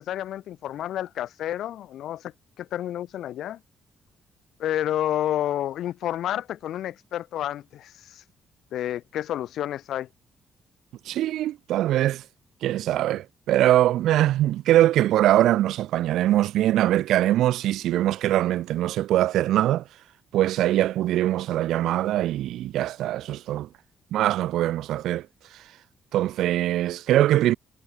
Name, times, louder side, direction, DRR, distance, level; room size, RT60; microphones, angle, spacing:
voice 1, 0.0-2.3 2.6-3.6 4.6-8.2 8.7-10.1, left 12 dB, 75° left, 2.6 m, -30 dB
voice 2, 11.1-12.2 12.6-19.8 20.3-23.7 24.1-25.3 26.1-27.5, right 13 dB, 85° right, 0.9 m, -22 dB
cardioid pair, 90°, 0 cm